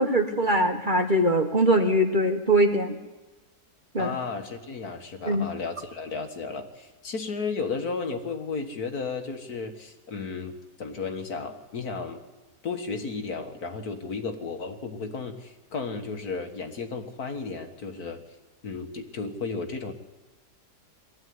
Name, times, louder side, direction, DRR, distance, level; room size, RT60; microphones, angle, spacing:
voice 1, 0.0-3.0 3.9-4.1 5.2-5.5, right 1 dB, 30° right, 4 dB, 1.4 m, -22 dB
voice 2, 4.0-12.2 12.6-18.2 18.6-19.9, left 4 dB, 60° left, 5 dB, 2.2 m, -34 dB
21.5 x 14.5 x 9.6 m, 1.1 s
omnidirectional pair, 1.8 m